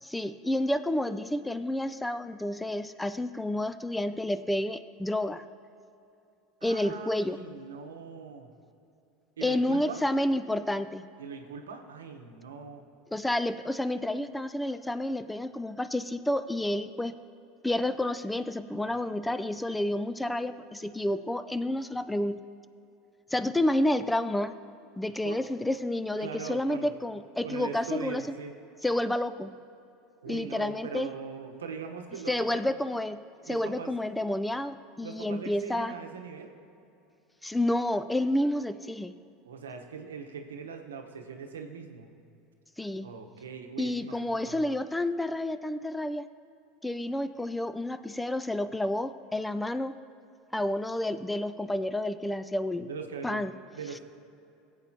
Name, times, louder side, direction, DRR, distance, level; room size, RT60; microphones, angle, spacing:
voice 1, 0.0-5.4 6.6-7.4 9.4-11.0 13.1-17.1 17.6-22.4 23.3-24.5 25.0-28.2 28.8-29.5 30.3-31.1 32.3-35.9 37.4-39.1 42.8-43.1 43.8-46.2 46.8-49.9 50.5-52.9 53.2-53.5, left 1 dB, 5° left, 12 dB, 0.4 m, -30 dB
voice 2, 6.6-8.5 9.4-10.0 11.2-12.9 25.2-25.4 26.2-26.9 27.4-28.5 30.2-32.6 33.5-33.9 35.0-36.5 39.4-42.1 43.0-44.6 52.8-54.0, right 5 dB, 85° right, 4 dB, 0.9 m, -41 dB
17.5 x 8.1 x 2.8 m, 2.7 s
hypercardioid pair, 85°, 0 cm